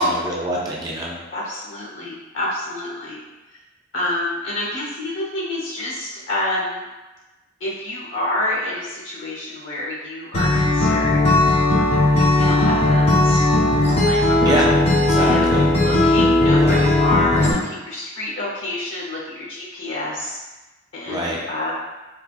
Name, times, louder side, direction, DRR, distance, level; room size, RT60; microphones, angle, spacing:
voice 1, 0.0-1.2 14.4-14.6 15.0-15.7 16.6-16.8 21.1-21.4, right 1 dB, 20° right, -3 dB, 0.4 m, -25 dB
voice 2, 1.3-3.2 3.9-6.8 7.6-11.3 12.3-13.5 13.8-14.6 15.2-20.4 20.9-21.7, left 1 dB, 70° left, -4 dB, 1.0 m, -27 dB
Acoustic guitar, 10.3-17.5, left 2 dB, 30° left, 0.6 m, -17 dB
3.7 x 2.3 x 2.4 m, 1.1 s
head